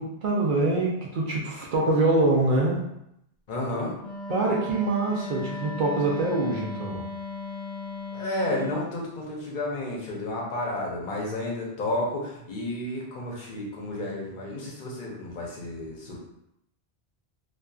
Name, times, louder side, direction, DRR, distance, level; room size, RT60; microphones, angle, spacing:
voice 1, 0.0-2.9 4.3-7.0, right 2 dB, 60° right, -2 dB, 0.6 m, -24 dB
voice 2, 3.5-3.9 8.1-16.2, left 1 dB, 50° left, -3 dB, 0.8 m, -31 dB
Wind instrument woodwind instrument, 4.0-8.9, left 4 dB, 80° left, 0.9 m, -36 dB
2.6 x 2.3 x 2.3 m, 0.80 s
omnidirectional pair, 1.1 m